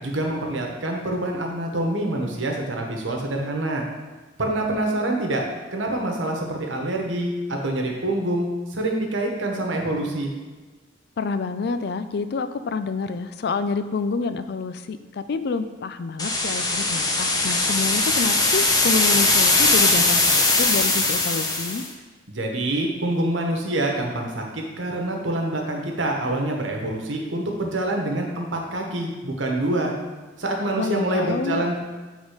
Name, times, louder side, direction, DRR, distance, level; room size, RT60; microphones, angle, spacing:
voice 1, 0.0-3.8 4.4-5.4 5.7-8.5 8.7-10.3 22.3-29.9 30.4-31.8, right 1 dB, 80° right, 1 dB, 1.2 m, -26 dB
voice 2, 11.2-21.8 30.8-31.6, left 4 dB, 55° left, 11 dB, 0.4 m, -28 dB
sound 1, 16.2-21.9, left 2 dB, 20° left, 0.8 m, -20 dB
8.0 x 3.7 x 5.0 m, 1.3 s
head